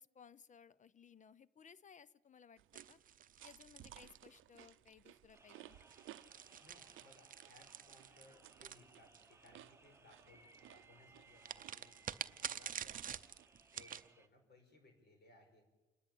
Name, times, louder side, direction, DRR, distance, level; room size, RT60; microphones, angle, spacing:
voice 1, 0.0-3.0 3.4-5.8, left 7 dB, 40° left, 20 dB, 0.7 m, -61 dB
sound 1, 2.6-13.5, right 14 dB, 80° right, 0.6 m, -61 dB
sound 2, 2.7-4.7 5.7-9.5 11.4-14.1, right 8 dB, 45° right, 0.7 m, -48 dB
sound 3, 5.3-14.3, right 3 dB, 15° right, 1.0 m, -65 dB
voice 2, 6.6-12.0 12.3-13.1 13.7-15.7, left 2 dB, 55° left, 4 dB, 5.7 m, -65 dB
28.0 x 10.5 x 9.0 m, 1.2 s
cardioid pair, 90°, 20 cm